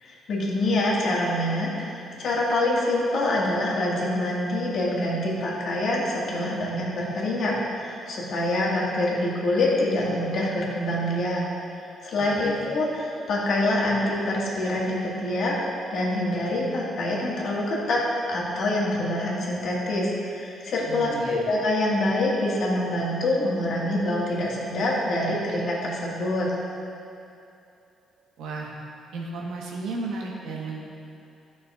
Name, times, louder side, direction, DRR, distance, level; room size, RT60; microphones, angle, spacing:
voice 1, 0.0-11.4 12.0-15.6 15.9-18.0 18.3-26.5, left 1 dB, 70° left, -5 dB, 1.6 m, -25 dB
voice 2, 20.9-21.4 28.4-28.7 29.1-30.8, right 3 dB, 85° right, -2 dB, 1.2 m, -34 dB
11.5 x 6.1 x 2.4 m, 2.7 s
cardioid pair, 90°, 0 cm